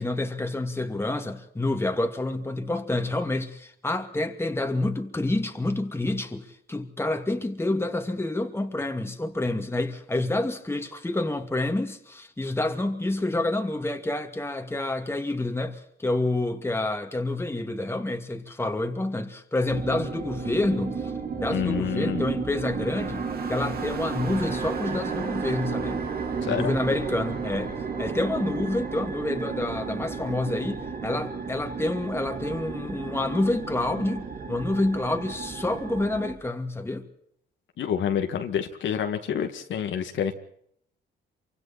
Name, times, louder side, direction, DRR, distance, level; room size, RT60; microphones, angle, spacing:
voice 1, 0.0-26.0 26.4-37.1, left 2 dB, 10° left, 2.5 m, -28 dB
sound 1, 19.7-36.3, right 5 dB, 50° right, 3.4 m, -33 dB
voice 2, 21.5-22.2 26.4-26.7 37.8-40.3, left 8 dB, 70° left, 2.1 m, -28 dB
27.5 x 25.0 x 4.3 m
cardioid pair, 90°, 20 cm